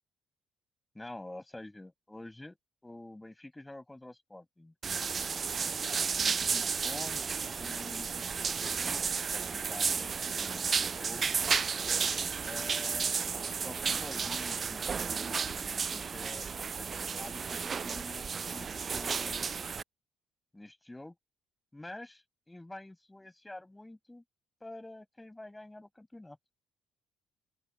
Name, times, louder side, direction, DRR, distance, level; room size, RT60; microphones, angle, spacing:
voice 1, 0.9-2.6 2.8-4.7 6.0-11.3 12.4-13.3 13.6-19.6 20.5-21.2 21.7-24.2 24.6-26.4, left 1 dB, 15° left, 5.6 m, -48 dB
sound 1, 4.8-19.8, right 6 dB, 45° right, 0.4 m, -33 dB
open air
hypercardioid pair, 55°, 0 cm